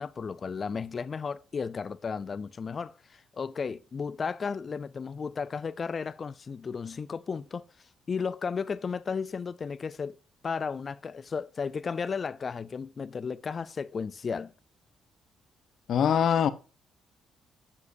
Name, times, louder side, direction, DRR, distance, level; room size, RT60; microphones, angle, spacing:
voice 1, 0.0-7.6 8.1-10.2 10.4-14.5, left 5 dB, 40° left, 0.5 m, -34 dB
voice 2, 15.9-16.5, left 8 dB, 65° left, 0.8 m, -23 dB
9.5 x 7.5 x 2.6 m
cardioid pair, 90°, 0 cm